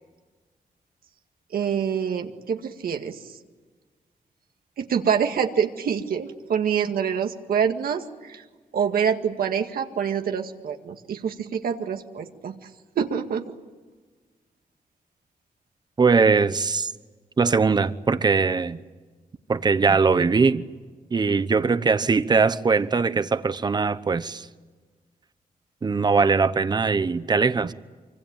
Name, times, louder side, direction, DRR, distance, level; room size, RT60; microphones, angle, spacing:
voice 1, 1.5-3.3 4.8-8.4 8.7-12.7 13.0-13.5, right 7 dB, 80° right, 2.0 m, -26 dB
voice 2, 16.0-16.9 17.4-18.8 19.5-20.6 21.1-24.5 25.8-27.7, right 4 dB, 30° right, 0.9 m, -21 dB
26.5 x 25.0 x 8.9 m
wide cardioid pair, 165°, 15 cm